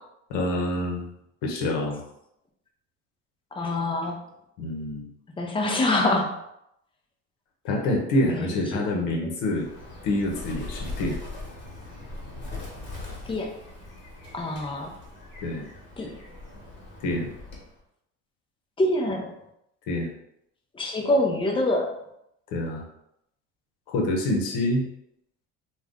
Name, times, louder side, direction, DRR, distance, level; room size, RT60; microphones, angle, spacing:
voice 1, 0.3-1.1 1.4-2.1 4.6-5.1 7.6-9.7 10.0-11.2 15.4-15.7 17.0-17.3 19.9-20.1 22.5-22.8 23.9-24.9, left 1 dB, 85° left, 0 dB, 0.7 m, -26 dB
voice 2, 3.6-4.2 5.4-6.3 8.3-8.6 8.9-9.3 13.3-13.5 14.3-14.9 16.0-16.1 18.8-19.3 20.7-21.9, left 1 dB, 15° left, 1 dB, 0.5 m, -25 dB
Bird, 9.5-17.8, left 2 dB, 40° left, 1.1 m, -40 dB
2.4 x 2.2 x 3.5 m, 0.78 s
cardioid pair, 115°, 30 cm